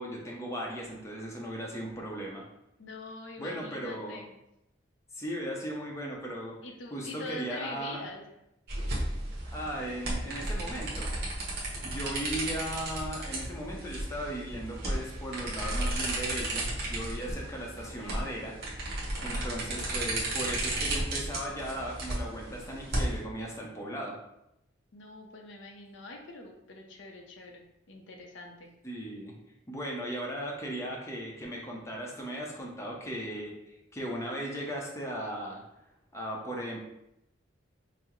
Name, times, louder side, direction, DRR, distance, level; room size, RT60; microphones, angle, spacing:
voice 1, 0.0-2.4 3.4-4.2 5.1-6.6 6.9-8.0 9.5-11.1 11.8-18.6 19.2-24.2 28.8-29.3 29.7-35.6 36.1-36.9, right 1 dB, 15° left, -2 dB, 0.6 m, -37 dB
voice 2, 2.8-4.3 6.6-8.3 17.7-18.2 19.2-19.9 24.9-28.7, left 2 dB, 70° left, 2 dB, 0.6 m, -44 dB
sound 1, 8.7-23.2, right 1 dB, 55° right, 1.2 m, -34 dB
5.6 x 2.0 x 3.0 m, 0.85 s
head